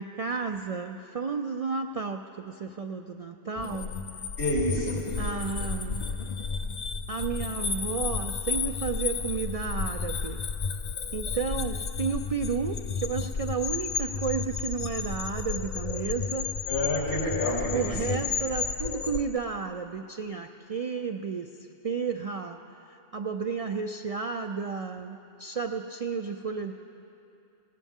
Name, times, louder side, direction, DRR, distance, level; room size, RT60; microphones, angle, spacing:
voice 1, 0.0-3.9 5.2-6.0 7.1-10.4 11.1-16.5 17.7-21.5 21.8-22.6 22.9-26.7, right 5 dB, 50° right, 5 dB, 0.4 m, -32 dB
sound 1, 3.6-19.2, left 5 dB, 50° left, 0.6 m, -32 dB
voice 2, 4.4-5.0 16.7-18.2, left 1 dB, 70° left, -6 dB, 4.3 m, -29 dB
20.5 x 17.5 x 3.6 m, 2.8 s
omnidirectional pair, 1.1 m